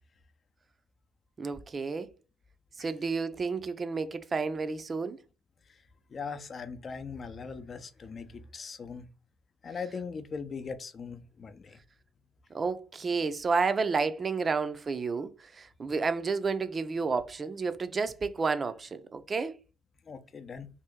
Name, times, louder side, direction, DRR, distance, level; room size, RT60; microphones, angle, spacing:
voice 1, 1.4-2.1 2.8-5.2 12.5-19.5, right 4 dB, 35° right, 0.5 m, -31 dB
voice 2, 6.1-9.1 9.6-11.8 20.1-20.7, left 5 dB, 45° left, 0.6 m, -40 dB
2.8 x 2.6 x 3.6 m
hypercardioid pair, 60°, 0 cm